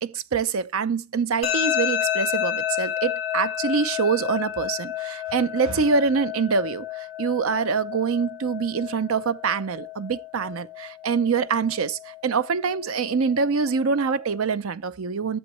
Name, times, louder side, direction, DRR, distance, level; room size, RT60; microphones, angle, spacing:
voice 1, 0.0-15.4, right 5 dB, 90° right, 0.6 m, -25 dB
sound 1, 1.4-14.4, left 11 dB, 30° left, 2.5 m, -31 dB
11.0 x 7.2 x 3.0 m
head